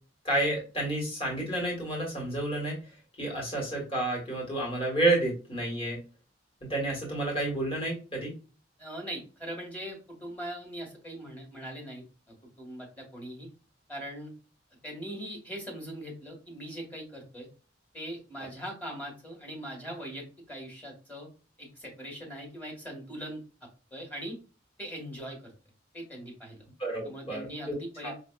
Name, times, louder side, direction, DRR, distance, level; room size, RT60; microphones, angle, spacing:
voice 1, 0.2-2.8 3.2-6.0 6.6-8.3 26.8-27.4 27.7-27.8 28.0-28.1, right 2 dB, 30° left, -3 dB, 1.5 m, -30 dB
voice 2, 8.8-13.5 13.9-14.3 14.8-17.5 17.9-21.3 21.6-23.4 23.9-24.4 24.8-25.5 25.9-26.6 27.0-28.1, right 1 dB, 10° left, -1 dB, 1.4 m, -41 dB
5.3 x 2.6 x 2.3 m, 0.34 s
head